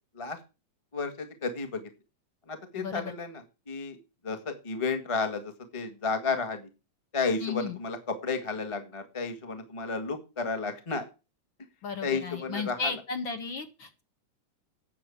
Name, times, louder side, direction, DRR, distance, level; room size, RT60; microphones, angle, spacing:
voice 1, 0.9-1.8 2.5-4.0 4.2-6.6 7.1-11.0 12.0-12.9, left 4 dB, 15° left, 6 dB, 1.0 m, -32 dB
voice 2, 2.7-3.1 7.4-7.8 11.8-14.0, left 5 dB, 50° left, 6 dB, 1.8 m, -34 dB
9.6 x 7.0 x 8.4 m, 0.30 s
omnidirectional pair, 3.3 m